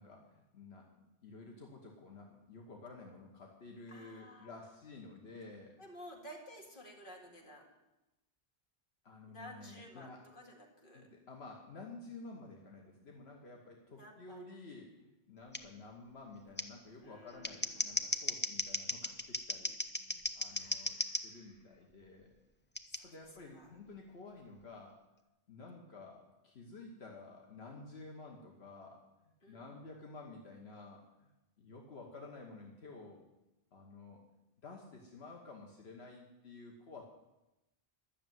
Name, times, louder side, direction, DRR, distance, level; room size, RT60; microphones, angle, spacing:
voice 1, 0.0-5.8 9.0-10.2 10.9-21.0 21.2-22.3 23.0-25.0 25.5-31.3 31.6-33.2 33.7-34.2 34.6-37.0, left 3 dB, 80° left, 0 dB, 1.5 m, -52 dB
voice 2, 3.9-4.5 5.8-7.7 9.3-11.1 13.9-14.4 17.0-18.3 20.5-21.8 22.9-23.8 29.4-29.6, equal, 55° left, 0 dB, 2.4 m, -54 dB
Scissors, 15.5-15.6 16.6-16.7 17.3-21.2 22.8-23.0, left 1 dB, 15° left, 0.6 m, -36 dB
12.0 x 6.8 x 9.2 m, 0.98 s
omnidirectional pair, 1.1 m